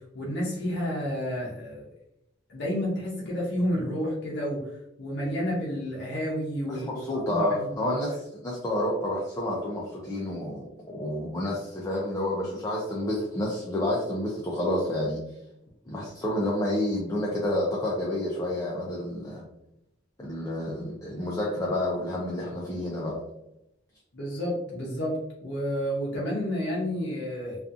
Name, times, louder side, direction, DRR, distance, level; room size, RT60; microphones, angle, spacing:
voice 1, 0.1-1.9 2.5-4.7 5.0-7.7 24.1-27.6, equal, 60° left, -5 dB, 0.6 m, -30 dB
voice 2, 6.6-15.2 15.9-19.4 20.2-23.2, left 1 dB, 15° left, -5 dB, 0.4 m, -29 dB
2.6 x 2.4 x 2.4 m, 0.85 s
head